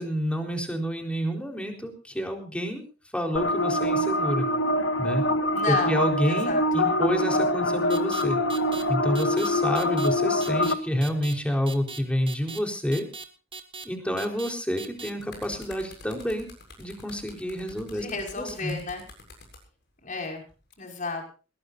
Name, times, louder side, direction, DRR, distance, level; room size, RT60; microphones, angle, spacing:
voice 1, 0.0-2.8 3.1-4.5 5.0-5.2 5.7-8.4 8.9-13.1 13.8-16.5 16.8-18.1 18.4-18.8, equal, 5° left, 3 dB, 4.1 m, -28 dB
sound 1, 3.4-10.7, left 1 dB, 90° left, 1.7 m, -25 dB
voice 2, 5.5-6.0 6.3-7.0 17.9-19.0 20.0-20.4 20.8-21.2, left 3 dB, 45° left, 2 dB, 5.7 m, -32 dB
sound 2, 7.9-8.2 8.5-8.8 9.1-9.5 9.7-10.1 10.4-10.7 11.0-11.3 11.7-12.0 12.3-12.6 12.9-13.2 13.5-13.8 14.2-14.5 14.8-15.1, right 4 dB, 30° right, 1.9 m, -39 dB
sound 3, 15.0-19.6 20.5-20.7, left 2 dB, 60° left, 7.4 m, -47 dB
21.5 x 19.0 x 2.7 m, 0.35 s
head